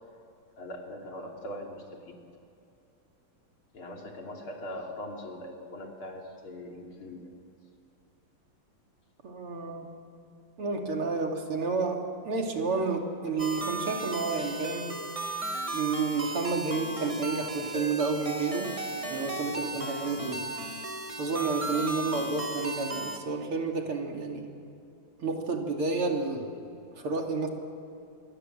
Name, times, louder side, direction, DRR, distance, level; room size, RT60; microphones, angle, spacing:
voice 1, 0.6-2.2 3.7-7.3, left 1 dB, 75° left, 1 dB, 4.0 m, -41 dB
voice 2, 9.2-9.9 10.6-14.9 15.7-18.7 19.1-20.5 21.2-24.4 25.2-26.5 27.0-27.5, right 4 dB, 90° right, 2 dB, 3.6 m, -30 dB
sound 1, 13.4-23.2, right 2 dB, 20° right, 1.3 m, -35 dB
27.0 x 23.0 x 7.8 m, 2.7 s
omnidirectional pair, 2.3 m